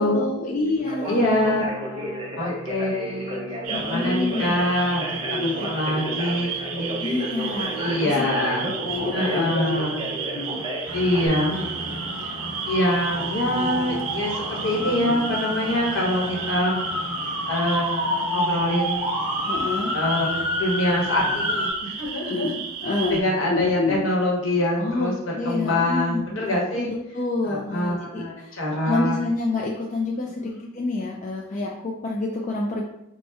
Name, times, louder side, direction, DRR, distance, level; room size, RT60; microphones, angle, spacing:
voice 1, 0.0-1.7 3.7-4.6 5.3-6.1 7.0-8.2 8.6-9.8 10.3-10.7 13.5-14.2 14.7-15.3 19.5-19.9 22.3-22.5 22.8-23.2 23.5-24.0 24.7-32.8, left 2 dB, 35° left, -1 dB, 0.4 m, -28 dB
Conversation, 0.8-11.3, right 1 dB, 25° right, 0.7 m, -33 dB
voice 2, 1.1-3.4 3.7-7.1 7.8-8.7 9.1-10.0 10.9-12.0 12.7-16.8 17.5-19.2 19.9-22.5 23.1-25.1 25.4-26.9 27.4-29.2 30.4-30.7, left 1 dB, 70° left, -3 dB, 1.1 m, -25 dB
sound 1, 3.6-23.2, right 7 dB, 80° right, 0.5 m, -34 dB
sound 2, 10.9-21.7, left 1 dB, 90° left, 1.2 m, -29 dB
4.2 x 2.1 x 3.4 m, 0.84 s
head